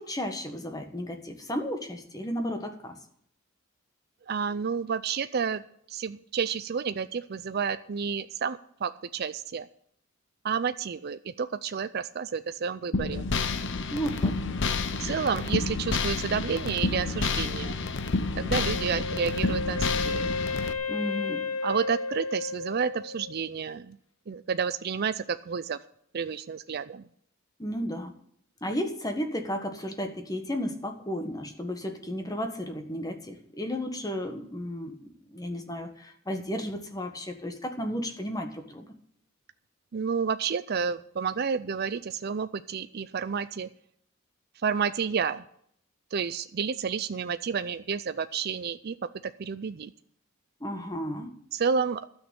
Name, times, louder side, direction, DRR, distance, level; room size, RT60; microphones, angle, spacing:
voice 1, 0.0-2.9 13.9-14.4 20.9-21.4 27.6-28.1 28.6-38.9 50.6-51.3, equal, 15° left, 5 dB, 1.4 m, -33 dB
voice 2, 4.3-5.6 5.9-9.7 10.4-13.2 15.0-17.8 18.4-20.3 21.6-24.0 24.3-25.8 26.1-27.0 39.9-43.7 44.6-45.4 46.1-49.0 49.2-49.9 51.5-52.1, right 6 dB, 50° right, 11 dB, 0.4 m, -30 dB
sound 1, 12.9-20.7, left 3 dB, 60° left, 0.8 m, -29 dB
Wind instrument woodwind instrument, 18.6-23.5, left 3 dB, 90° left, 1.0 m, -33 dB
12.5 x 6.5 x 8.7 m, 0.67 s
head